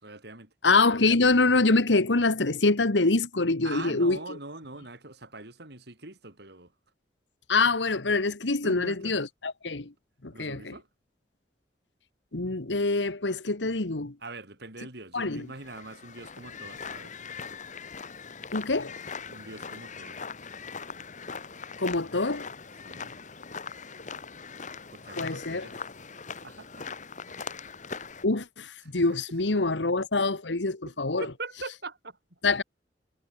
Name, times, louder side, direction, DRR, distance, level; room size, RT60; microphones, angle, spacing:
voice 1, 0.0-0.5 3.6-6.7 8.6-9.2 10.3-10.9 14.2-17.2 19.3-20.2 22.8-23.2 24.9-25.8 26.4-27.0 27.2-27.4 28.8-29.0 29.5-29.6 31.2-32.4, right 3 dB, 65° right, 5.8 m, -43 dB
voice 2, 0.6-4.2 7.5-9.9 10.2-10.7 12.3-14.1 15.1-15.4 18.5-18.9 21.8-22.5 25.2-25.7 28.2-31.2 32.4-32.6, left 3 dB, 90° left, 1.6 m, -25 dB
sound 1, 15.5-28.2, left 5 dB, 45° left, 2.1 m, -41 dB
head